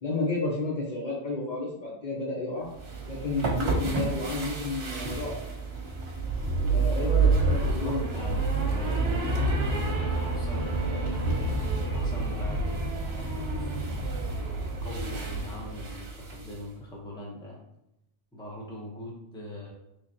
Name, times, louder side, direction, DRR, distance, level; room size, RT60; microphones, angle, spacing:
voice 1, 0.0-2.7 3.1-5.5 6.7-8.1, left 2 dB, 50° left, -3 dB, 0.8 m, -31 dB
sound 1, 2.7-16.6, right 3 dB, 70° right, 1.0 m, -28 dB
voice 2, 7.5-11.3 11.9-17.7 18.3-19.7, equal, 5° left, -3 dB, 0.7 m, -42 dB
3.6 x 3.1 x 2.7 m, 0.84 s
omnidirectional pair, 1.1 m